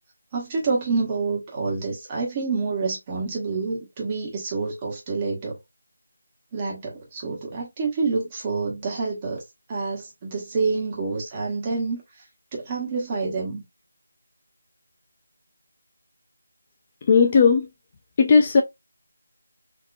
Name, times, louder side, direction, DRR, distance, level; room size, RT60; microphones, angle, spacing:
voice 1, 0.3-5.6 6.5-9.4 9.7-12.0 12.5-13.6, right 4 dB, 20° right, 1.3 m, -27 dB
voice 2, 17.1-17.7 18.2-18.6, left 5 dB, 25° left, 0.5 m, -16 dB
3.8 x 2.8 x 2.3 m
figure-of-eight pair, 160°, 0 cm